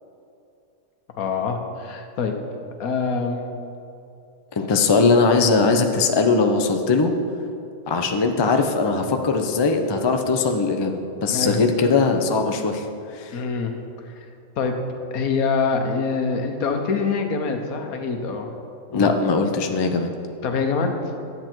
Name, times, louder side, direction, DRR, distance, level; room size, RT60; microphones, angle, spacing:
voice 1, 1.2-2.3 2.8-3.5 11.3-11.6 13.3-13.7 14.6-14.7 15.1-18.5 18.9-19.1 20.4-20.9, left 5 dB, 85° left, 5 dB, 1.4 m, -24 dB
voice 2, 4.6-7.1 7.9-12.8 13.1-13.3 18.9-20.1, left 4 dB, 40° left, 5 dB, 0.3 m, -20 dB
10.5 x 7.9 x 4.5 m, 2.6 s
omnidirectional pair, 1.5 m